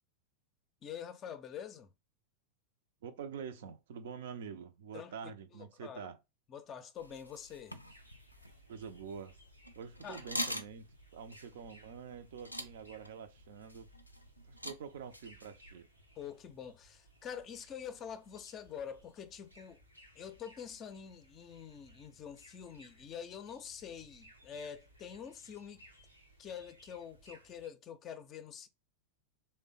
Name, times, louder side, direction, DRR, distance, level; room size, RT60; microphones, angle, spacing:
voice 1, 0.8-1.9 4.9-5.1 5.5-6.1 6.5-7.8 10.0-10.2 16.2-19.8 20.2-25.8 26.4-28.7, left 8 dB, 30° left, 0.5 m, -46 dB
voice 2, 3.0-6.2 8.7-9.4 9.8-13.9 14.5-15.9, right 7 dB, 55° right, 0.4 m, -46 dB
sound 1, 7.0-15.8, equal, 90° left, 0.4 m, -45 dB
sound 2, 7.8-27.7, equal, 90° right, 0.9 m, -62 dB
3.2 x 2.1 x 3.9 m
figure-of-eight pair, 90°, 0 cm